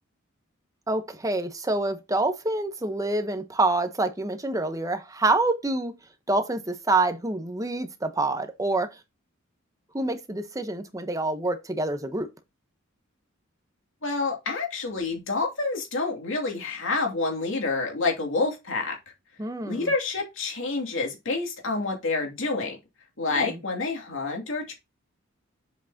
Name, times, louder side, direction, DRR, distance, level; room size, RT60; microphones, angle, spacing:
voice 1, 0.9-5.9 6.3-8.9 9.9-12.3 19.4-19.9 23.3-23.6, right 2 dB, 15° right, 1.0 m, -27 dB
voice 2, 14.0-19.0 19.6-22.8 23.2-24.7, left 3 dB, 65° left, 2.8 m, -28 dB
7.4 x 6.0 x 2.8 m
head